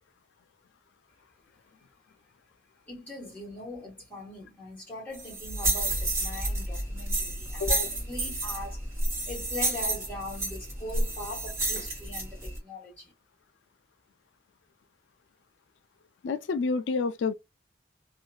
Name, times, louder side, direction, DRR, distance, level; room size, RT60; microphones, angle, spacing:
voice 1, 2.9-8.8 9.2-13.1, left 1 dB, 10° left, 1.6 m, -41 dB
sound 1, 5.1-12.6, right 2 dB, 15° right, 1.3 m, -30 dB
voice 2, 16.2-17.3, left 4 dB, 90° left, 0.3 m, -28 dB
2.8 x 2.5 x 2.2 m
head